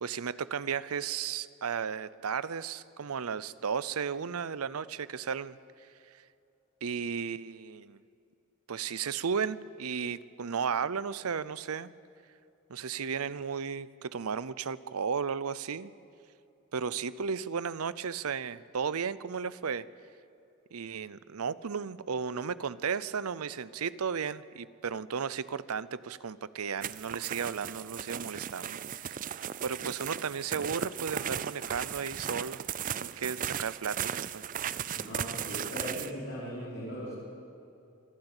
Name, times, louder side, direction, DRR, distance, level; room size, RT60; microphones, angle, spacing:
voice 1, 0.0-5.6 6.8-8.0 8.7-11.9 12.7-15.9 16.7-19.8 20.7-32.6 33.0-34.4, right 6 dB, 85° right, 18 dB, 0.6 m, -34 dB
sound 1, 26.8-36.1, right 9 dB, 35° right, 0.4 m, -36 dB
voice 2, 34.9-37.1, equal, 55° left, -8 dB, 5.1 m, -39 dB
25.5 x 12.0 x 9.0 m, 2.6 s
head